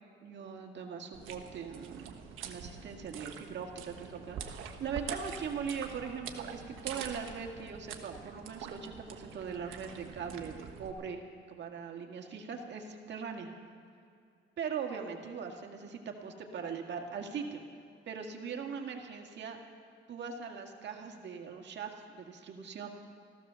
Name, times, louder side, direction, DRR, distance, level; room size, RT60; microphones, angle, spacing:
voice 1, 0.2-2.1 2.4-11.2 11.5-13.5 14.6-17.6 18.1-19.6 20.1-22.9, right 6 dB, 60° right, 2 dB, 1.9 m, -40 dB
sound 1, 1.1-10.9, right 7 dB, 85° right, 1.3 m, -45 dB
14.5 x 13.0 x 6.9 m, 2.3 s
cardioid pair, 90°, 20 cm